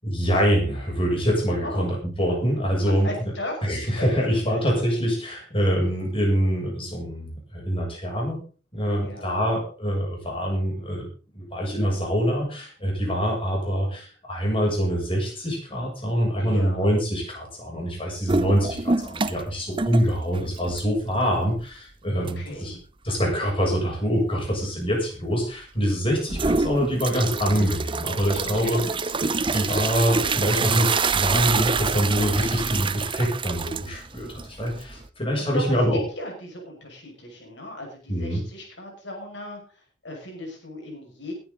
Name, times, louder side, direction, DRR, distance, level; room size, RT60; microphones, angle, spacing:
voice 1, 0.0-3.1 3.6-8.4 8.7-11.1 11.3-22.7 23.0-28.8 29.5-36.0 38.1-38.4, equal, 30° left, -1 dB, 7.7 m, -25 dB
voice 2, 3.0-3.6 9.0-9.5 16.4-16.9 22.1-22.8 28.4-28.8 35.3-35.8 36.1-41.3, left 1 dB, 70° left, 1 dB, 6.3 m, -37 dB
sound 1, 18.3-19.5 19.8-21.1 21.6-21.7 22.3-22.4 26.3-35.1, right 4 dB, 25° right, 0.8 m, -26 dB
21.0 x 10.5 x 4.0 m, 0.37 s
head